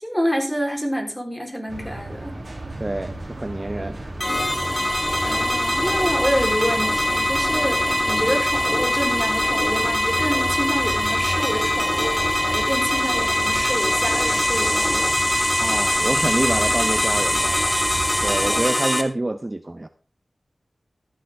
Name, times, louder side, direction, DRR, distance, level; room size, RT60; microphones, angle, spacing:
voice 1, 0.0-2.4 5.3-7.8 8.1-12.2 12.4-15.1, equal, 5° left, 2 dB, 3.8 m, -27 dB
sound 1, 1.7-18.6, right 1 dB, 50° right, 2.8 m, -34 dB
voice 2, 2.8-4.0 8.2-8.3 15.6-17.7 18.2-19.9, right 1 dB, 30° right, 9 dB, 0.7 m, -27 dB
sound 2, 4.2-19.0, left 1 dB, 20° left, 1.7 m, -22 dB
13.5 x 10.0 x 3.5 m, 0.36 s
wide cardioid pair, 60°, 0 cm